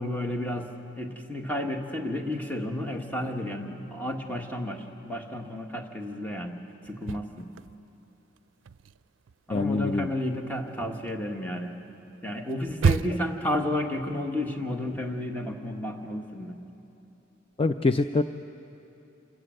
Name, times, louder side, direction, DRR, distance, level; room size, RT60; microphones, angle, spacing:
voice 1, 0.0-7.5 9.5-11.7 12.2-16.6, left 1 dB, 10° left, 2 dB, 1.6 m, -32 dB
sound 1, 6.9-8.1 8.4-13.5, right 5 dB, 80° right, 0.4 m, -31 dB
voice 2, 9.5-10.1 17.6-18.2, left 3 dB, 30° left, 9 dB, 0.4 m, -24 dB
27.5 x 16.5 x 7.7 m, 3.0 s
head